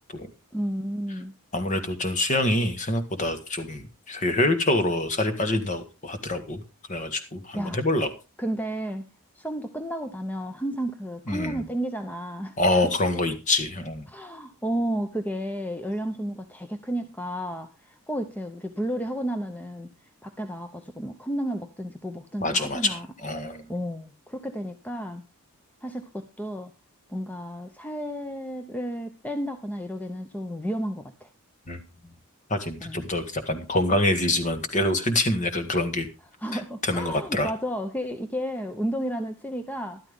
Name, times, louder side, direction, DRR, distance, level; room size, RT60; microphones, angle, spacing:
voice 1, 0.5-1.3 7.5-7.8 8.4-9.0 9.3-12.6 12.8-12.9 14.1-19.9 20.2-23.1 23.7-25.2 25.8-26.7 27.1-31.3 32.8-33.1 36.4-40.0, equal, 5° left, 7 dB, 0.8 m, -32 dB
voice 2, 1.5-6.6 6.9-8.1 11.3-11.7 12.6-14.1 22.4-23.7 31.7-31.8 32.5-36.1 36.5-37.5, left 1 dB, 35° left, 8 dB, 1.6 m, -26 dB
13.5 x 12.0 x 3.6 m, 0.28 s
head